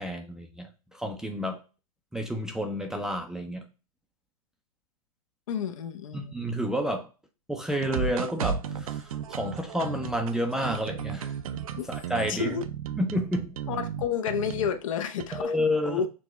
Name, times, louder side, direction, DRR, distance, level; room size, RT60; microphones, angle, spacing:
voice 1, 0.0-1.6 2.1-3.7 6.1-7.1 7.5-11.3 11.9-12.6 13.0-13.6 15.3-16.0, equal, 5° right, 0.4 m, -30 dB
voice 2, 5.5-6.3 11.8-11.9 12.3-12.7 13.7-15.5 15.8-16.1, left 7 dB, 60° left, 0.6 m, -30 dB
sound 1, 7.7-14.8 15.2-15.4, right 7 dB, 70° right, 0.5 m, -34 dB
6.1 x 2.2 x 3.0 m
hypercardioid pair, 125°, 19 cm